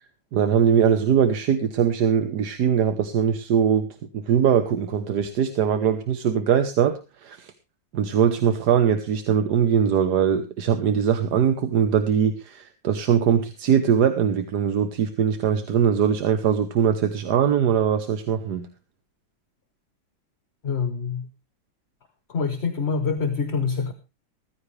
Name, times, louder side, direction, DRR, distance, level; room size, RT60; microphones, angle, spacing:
voice 1, 0.3-3.9 4.1-7.5 7.9-18.7, right 8 dB, 60° right, 9 dB, 1.5 m, -21 dB
voice 2, 20.6-21.3 22.3-23.9, left 5 dB, 40° left, 8 dB, 1.3 m, -25 dB
15.0 x 14.5 x 3.3 m, 0.28 s
omnidirectional pair, 2.1 m